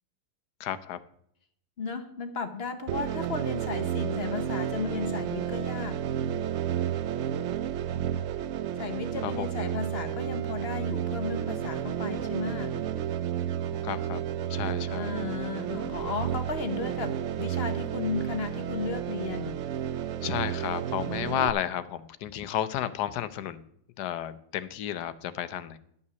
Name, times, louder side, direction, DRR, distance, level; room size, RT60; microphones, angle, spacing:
voice 1, 0.6-1.0 7.9-8.3 9.2-9.5 13.8-14.2 14.5-15.2 20.2-23.6 24.0-25.8, left 11 dB, 80° left, 13 dB, 1.3 m, -32 dB
voice 2, 1.8-6.1 8.8-12.8 14.9-19.6, left 5 dB, 45° left, 8 dB, 1.0 m, -34 dB
sound 1, 2.9-21.5, right 10 dB, 65° right, 0.7 m, -31 dB
11.0 x 5.6 x 6.8 m, 0.69 s
omnidirectional pair, 1.8 m